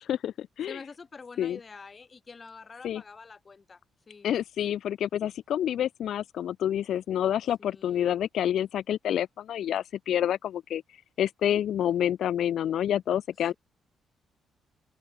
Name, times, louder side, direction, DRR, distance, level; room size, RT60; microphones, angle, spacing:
voice 1, 0.0-0.8 1.4-1.6 2.8-3.0 4.2-10.8 11.2-13.5, left 10 dB, 70° left, 0.4 m, -28 dB
voice 2, 0.7-3.8 4.1-4.3 7.6-8.1, left 4 dB, 35° left, 7.4 m, -46 dB
open air
cardioid pair, 90°, 0 cm